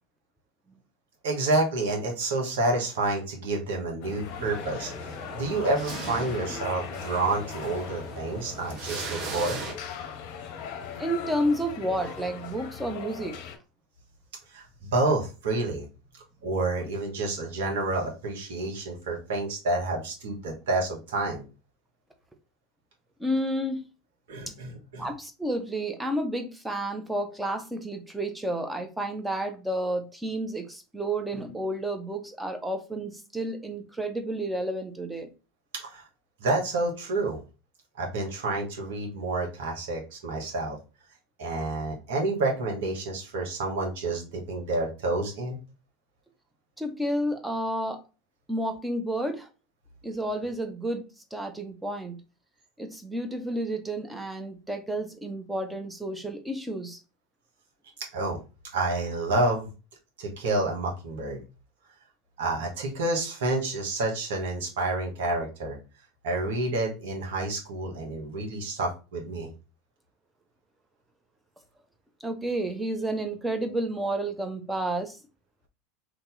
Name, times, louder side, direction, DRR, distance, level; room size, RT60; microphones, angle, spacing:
voice 1, 1.2-9.6 14.5-15.9 16.4-21.4 24.3-25.1 35.7-36.0 36.4-37.4 38.0-40.8 41.4-45.6 58.1-58.4 58.7-59.7 60.2-61.4 62.4-65.8 66.2-69.5, right 2 dB, 75° right, 1.2 m, -29 dB
sound 1, 4.0-13.6, left 7 dB, 60° left, 0.6 m, -39 dB
sound 2, 4.2-9.7, right 4 dB, 50° right, 1.1 m, -39 dB
voice 2, 11.0-13.5 23.2-23.8 25.0-35.3 46.8-48.0 48.5-49.5 50.0-52.2 52.8-57.0 72.2-75.2, right 1 dB, 10° right, 0.8 m, -31 dB
2.8 x 2.8 x 3.8 m
hypercardioid pair, 85°, 0 cm